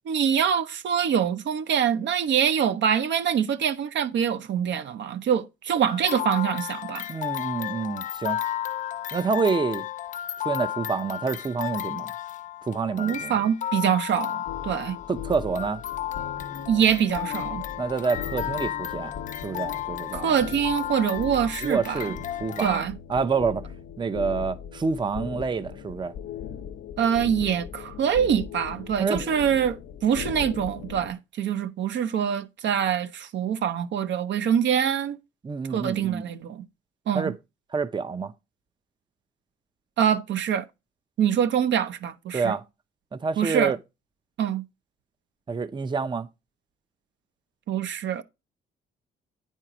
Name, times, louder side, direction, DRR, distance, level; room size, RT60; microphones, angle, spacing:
voice 1, 0.1-7.0 13.0-15.0 16.7-17.6 20.1-22.1 22.6-22.9 27.0-35.2 35.7-36.6 37.1-37.3 40.0-40.7 41.2-42.6 43.4-43.7 44.4-44.6 47.7-48.2, right 8 dB, 65° right, 0.7 m, -25 dB
sound 1, 5.9-22.9, left 12 dB, 40° left, 0.4 m, -33 dB
voice 2, 7.1-8.4 9.1-9.8 10.4-12.1 12.7-13.3 15.1-15.8 17.8-19.1 19.4-20.4 21.6-22.8 23.1-23.6 24.0-26.1 29.0-29.2 35.4-36.3 37.1-37.3 37.7-38.3 42.3-42.6 43.1-43.8 45.5-46.3, right 5 dB, 25° right, 0.6 m, -27 dB
sound 2, 14.5-31.1, left 8 dB, 90° left, 0.9 m, -39 dB
9.1 x 4.5 x 4.9 m
cardioid pair, 90°, 20 cm